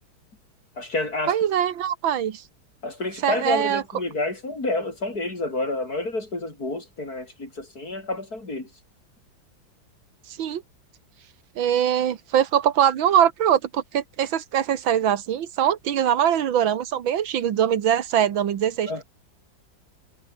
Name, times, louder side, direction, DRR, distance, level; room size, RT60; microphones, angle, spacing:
voice 1, 0.8-1.4 2.8-8.7 18.9-19.0, left 2 dB, 50° left, 6.5 m, -29 dB
voice 2, 1.3-2.4 3.2-3.8 10.4-10.6 11.6-18.9, right 9 dB, 90° right, 2.1 m, -22 dB
omnidirectional pair, 2.1 m